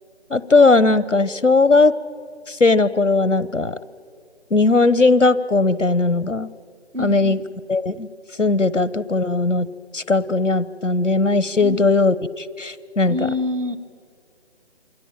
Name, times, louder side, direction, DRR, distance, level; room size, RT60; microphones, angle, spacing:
voice 1, 0.3-1.9 2.5-3.8 4.5-6.5 7.0-7.4 7.7-8.1 8.4-9.7 9.9-13.2, left 3 dB, 90° left, 17 dB, 1.1 m, -18 dB
voice 2, 6.9-7.4 11.6-11.9 13.1-13.8, left 2 dB, 90° right, 12 dB, 2.1 m, -26 dB
27.5 x 23.5 x 8.8 m, 2.2 s
figure-of-eight pair, 155°, 36 cm